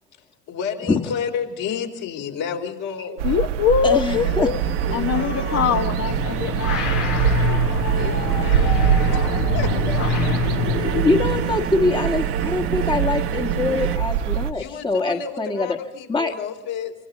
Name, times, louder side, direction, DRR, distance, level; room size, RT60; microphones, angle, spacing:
voice 1, 0.5-3.4 4.2-4.4 4.9-5.7 7.9-8.8 9.1-10.3 14.5-16.9, left 7 dB, 60° left, 1 dB, 4.7 m, -31 dB
voice 2, 3.2-4.6 4.9-10.6, left 7 dB, 40° left, 6 dB, 1.3 m, -25 dB
sound 1, 3.2-14.5, right 8 dB, 85° right, 1.3 m, -24 dB
voice 3, 3.8-4.5 10.7-15.8 16.1-16.3, left 3 dB, 15° left, 4 dB, 1.6 m, -23 dB
sound 2, 4.0-14.0, right 9 dB, 40° right, 1.2 m, -29 dB
sound 3, 6.0-11.5, left 7 dB, 90° left, 1.9 m, -26 dB
26.0 x 25.5 x 4.1 m, 0.95 s
hypercardioid pair, 80°, 36 cm